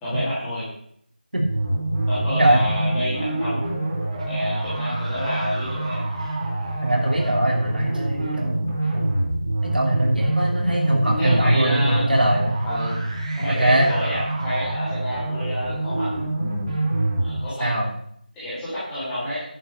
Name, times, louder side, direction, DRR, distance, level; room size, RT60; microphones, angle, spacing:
voice 1, 0.0-0.7 2.1-3.9 4.3-6.1 10.8-12.1 12.6-13.0 13.4-16.6 17.2-17.9 18.3-19.4, equal, ahead, -14 dB, 1.5 m, -29 dB
sound 1, 1.3-17.4, right 2 dB, 45° right, 3.9 m, -26 dB
voice 2, 6.8-9.1 9.6-12.6 13.6-13.9 17.6-17.9, right 1 dB, 70° right, 0 dB, 3.0 m, -21 dB
10.0 x 5.2 x 6.5 m, 0.67 s
figure-of-eight pair, 175°, 5 cm